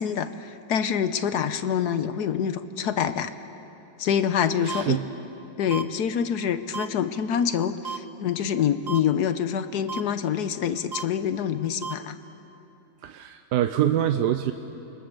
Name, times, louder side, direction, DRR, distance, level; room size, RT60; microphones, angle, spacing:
voice 1, 0.0-3.3 4.0-5.0 5.6-12.2, left 8 dB, 70° left, 11 dB, 1.4 m, -26 dB
voice 2, 4.6-5.1 13.0-14.5, right 11 dB, 75° right, 8 dB, 1.3 m, -25 dB
sound 1, 4.7-4.8 5.7-5.8 6.7-6.9 7.8-8.0 8.9-9.0 9.9-10.0 10.9-11.0 11.8-11.9, right 5 dB, 40° right, 0.6 m, -32 dB
28.0 x 23.0 x 6.8 m, 2.9 s
omnidirectional pair, 1.9 m